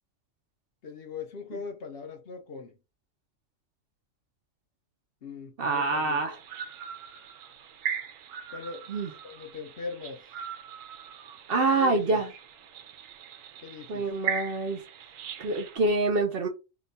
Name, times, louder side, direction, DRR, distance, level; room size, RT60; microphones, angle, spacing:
voice 1, 0.8-2.7 5.2-6.2 8.5-8.9 9.2-10.2 11.7-12.2 13.6-14.1, left 4 dB, 55° left, 0.8 m, -40 dB
voice 2, 5.6-6.4 8.9-9.1 11.5-12.3 13.9-14.8 15.4-16.5, right 3 dB, 60° right, 0.7 m, -26 dB
sound 1, 6.3-15.8, right 7 dB, 85° right, 1.0 m, -39 dB
2.9 x 2.2 x 3.9 m
omnidirectional pair, 1.3 m